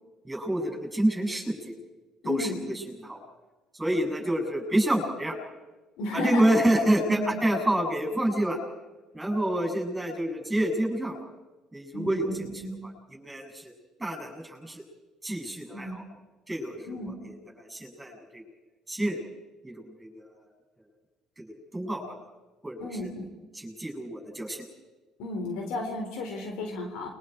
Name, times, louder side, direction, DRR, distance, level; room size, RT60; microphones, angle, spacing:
voice 1, 0.2-1.7 2.2-3.2 3.7-5.4 6.1-8.6 9.1-11.2 11.7-13.7 14.0-14.8 15.2-16.0 16.5-18.4 18.9-19.2 19.6-20.3 21.5-22.0 22.6-22.9 23.5-24.6, right 1 dB, 10° right, 2 dB, 7.7 m, -28 dB
voice 2, 2.2-2.7 6.0-6.6 7.1-7.3 11.9-12.7 15.7-16.0 16.9-17.1 22.8-23.3 25.2-27.1, left 2 dB, 80° left, 2 dB, 4.4 m, -33 dB
30.0 x 23.5 x 4.8 m, 1.2 s
supercardioid pair, 90°, 0 cm